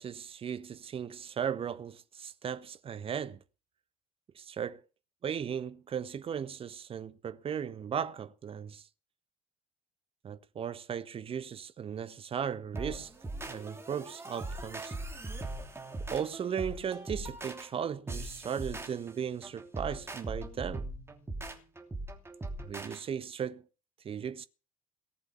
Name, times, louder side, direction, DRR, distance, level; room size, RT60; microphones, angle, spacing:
voice 1, 0.0-3.4 4.3-4.8 5.2-8.9 10.2-13.1 13.4-15.0 16.1-20.9 22.6-23.7 24.0-24.5, right 8 dB, 35° right, 1.2 m, -36 dB
sound 1, 12.7-23.0, right 2 dB, 15° right, 2.9 m, -40 dB
18.5 x 7.6 x 7.1 m
figure-of-eight pair, 55°, 17 cm